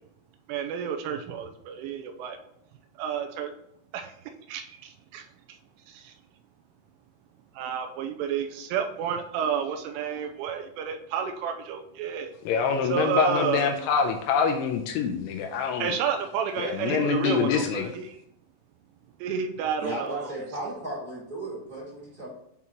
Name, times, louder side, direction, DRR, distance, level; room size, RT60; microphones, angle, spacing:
voice 1, 0.5-2.4 3.0-3.5 3.9-4.1 4.5-5.3 5.9-6.1 7.6-12.3 12.9-13.8 15.8-18.2 19.2-20.3, right 7 dB, 85° right, 5 dB, 3.0 m, -30 dB
voice 2, 12.5-16.0 16.6-17.9, left 6 dB, 80° left, 4 dB, 2.8 m, -25 dB
voice 3, 19.8-22.3, right 2 dB, 25° right, -8 dB, 1.2 m, -35 dB
10.5 x 3.6 x 2.9 m, 0.76 s
omnidirectional pair, 5.8 m